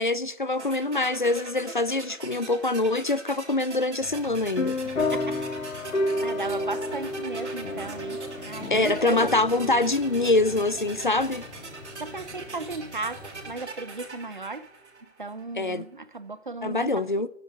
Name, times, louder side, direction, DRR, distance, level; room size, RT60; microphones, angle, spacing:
voice 1, 0.0-4.8 8.7-11.4 15.6-15.8 16.6-17.3, left 2 dB, 40° left, 0.6 m, -24 dB
sound 1, 0.6-15.5, right 3 dB, 60° right, 3.6 m, -42 dB
sound 2, 4.0-13.5, left 2 dB, 15° right, 7.1 m, -47 dB
sound 3, 4.6-12.7, left 2 dB, 80° left, 2.0 m, -32 dB
voice 2, 4.8-5.4 6.2-9.3 12.0-14.7 15.2-17.1, right 3 dB, 40° right, 0.6 m, -36 dB
13.0 x 9.4 x 9.2 m
hypercardioid pair, 180°, 38 cm